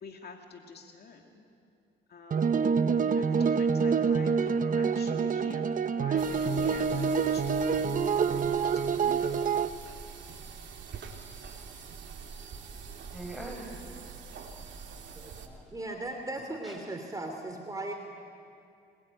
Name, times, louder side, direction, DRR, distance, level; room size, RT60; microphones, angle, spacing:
voice 1, 0.0-1.4 2.1-9.3, left 4 dB, 55° left, 2 dB, 2.5 m, -47 dB
sound 1, 2.3-9.7, right 6 dB, 40° right, 0.8 m, -26 dB
sound 2, 6.2-15.5, right 5 dB, 65° right, 2.8 m, -45 dB
voice 2, 13.1-13.8 14.8-16.0 16.6-16.8, right 1 dB, ahead, 1 dB, 7.4 m, -45 dB
voice 3, 15.7-17.9, right 2 dB, 20° right, 3 dB, 2.8 m, -37 dB
25.0 x 22.0 x 9.3 m, 2.5 s
cardioid pair, 90°, 20 cm